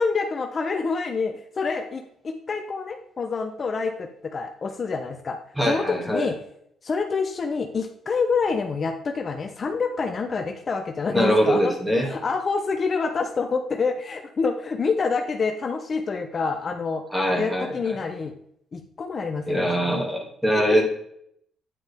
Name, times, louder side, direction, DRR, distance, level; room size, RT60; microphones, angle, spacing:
voice 1, 0.0-5.4 5.6-6.4 6.8-11.7 12.0-17.0 17.3-18.3 18.7-20.1 20.7-20.8, left 4 dB, 40° left, 5 dB, 0.8 m, -27 dB
voice 2, 5.6-6.3 11.1-12.1 17.1-17.7 19.5-20.8, equal, 10° right, 0 dB, 2.3 m, -22 dB
9.6 x 6.1 x 3.5 m, 0.71 s
cardioid pair, 90°, 0 cm